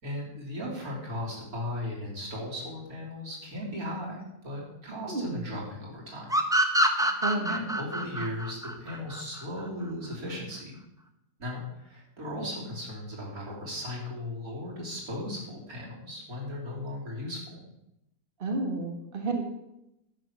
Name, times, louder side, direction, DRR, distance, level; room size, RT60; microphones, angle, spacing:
voice 1, 0.0-6.3 7.5-10.8 11.4-17.6, left 1 dB, 80° right, -3 dB, 3.9 m, -37 dB
voice 2, 5.1-5.5 7.2-7.5 18.4-19.4, right 2 dB, 40° right, 2 dB, 1.6 m, -31 dB
sound 1, 6.3-9.7, right 1 dB, 5° right, 0.8 m, -26 dB
11.0 x 8.5 x 6.1 m, 0.86 s
omnidirectional pair, 1.5 m